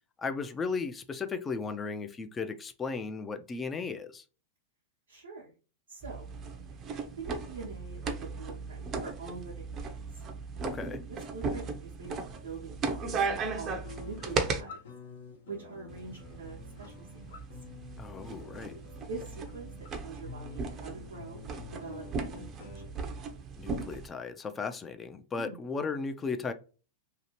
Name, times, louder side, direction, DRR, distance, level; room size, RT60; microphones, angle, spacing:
voice 1, 0.2-4.2 10.6-11.0 18.0-18.8 23.6-26.5, left 4 dB, 20° left, 0.4 m, -36 dB
voice 2, 5.1-5.5 5.9-6.3 6.9-10.2 11.1-12.1 12.4-13.3 13.6-14.8 15.4-17.4 19.0-19.7 20.0-21.4 21.7-22.8 25.3-25.6, right 4 dB, 90° right, 0.9 m, -44 dB
sound 1, 6.0-14.6 15.9-24.1, right 4 dB, 30° right, 0.6 m, -37 dB
sound 2, 13.8-22.8, left 6 dB, 75° left, 1.0 m, -49 dB
2.8 x 2.4 x 3.0 m
hypercardioid pair, 110°, 0 cm